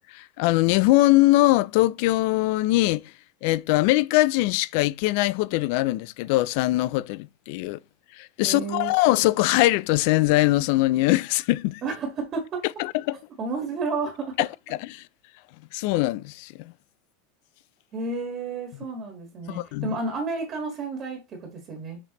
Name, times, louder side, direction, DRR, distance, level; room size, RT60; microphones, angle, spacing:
voice 1, 0.1-3.0 3.4-7.8 8.2-11.8 12.8-13.2 14.4-14.5 14.9-15.0 15.7-16.5 19.5-19.9, left 18 dB, 55° left, 0.3 m, -22 dB
voice 2, 8.4-8.9 11.8-12.7 13.4-14.3 17.9-22.0, right 3 dB, 30° right, 1.6 m, -31 dB
6.7 x 5.1 x 3.0 m
supercardioid pair, 160°, 0 cm